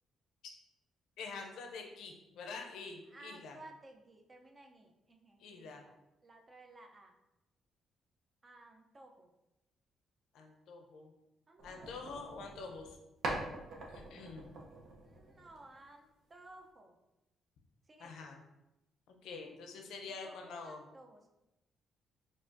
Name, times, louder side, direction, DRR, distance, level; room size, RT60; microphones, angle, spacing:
voice 1, 1.2-3.6 5.4-5.8 10.3-11.1 11.6-13.0 13.9-14.5 18.0-18.4 19.1-20.8, left 4 dB, 80° left, 3 dB, 0.6 m, -46 dB
voice 2, 3.1-6.0 6.2-7.1 8.4-9.3 11.5-12.1 15.0-16.9 17.9-18.3 20.1-21.3, right 2 dB, 30° right, 3 dB, 0.5 m, -57 dB
sound 1, 11.6-12.9 13.2-15.8, right 2 dB, 75° right, 0.8 m, -43 dB
4.7 x 2.5 x 2.6 m, 0.94 s
cardioid pair, 90°, 0 cm